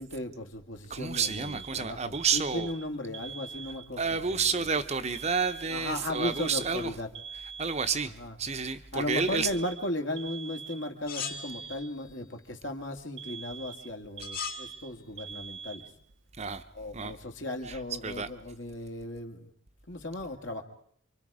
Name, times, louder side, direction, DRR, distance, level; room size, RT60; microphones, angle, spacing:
voice 1, 0.0-4.5 5.7-7.1 8.2-8.3 8.9-15.8 16.7-19.5 19.9-20.6, left 1 dB, 65° left, 5 dB, 2.4 m, -36 dB
voice 2, 0.9-2.7 4.0-6.9 7.6-9.5 16.4-16.6 16.9-17.2 17.7-18.3, right 5 dB, 30° right, 9 dB, 0.9 m, -30 dB
Alarm, 1.1-4.1 5.1-8.1 9.2-12.1 13.2-16.1, right 6 dB, 65° right, 0.9 m, -44 dB
sound 1, 11.1-12.1 14.2-14.8, left 7 dB, 45° left, 1.7 m, -38 dB
28.0 x 24.5 x 5.0 m, 0.63 s
head